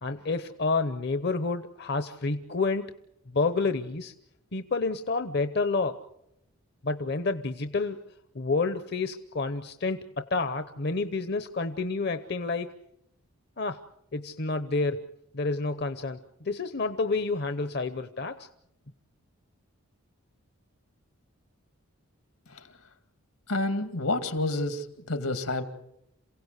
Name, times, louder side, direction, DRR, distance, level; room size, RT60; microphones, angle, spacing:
voice 1, 0.0-2.9 3.3-4.1 4.5-6.0 6.8-8.0 8.3-12.7 13.6-13.8 14.1-15.1 15.3-16.2 16.4-18.5, left 3 dB, 45° left, 10 dB, 0.8 m, -29 dB
voice 2, 23.5-25.6, left 2 dB, 80° left, 8 dB, 2.3 m, -29 dB
28.0 x 17.0 x 8.2 m, 0.81 s
head